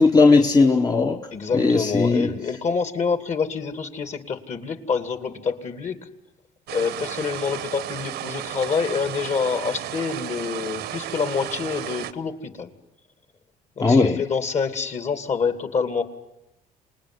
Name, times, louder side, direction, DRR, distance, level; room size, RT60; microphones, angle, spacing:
voice 1, 0.0-1.2 1.5-2.3 13.8-14.2, left 3 dB, 20° left, 1.1 m, -17 dB
voice 2, 1.3-6.0 6.7-12.7 13.8-16.0, left 5 dB, 45° left, 2.6 m, -27 dB
sound 1, 6.7-12.1, right 12 dB, 75° right, 1.1 m, -33 dB
27.5 x 20.0 x 9.7 m
cardioid pair, 110°, 17 cm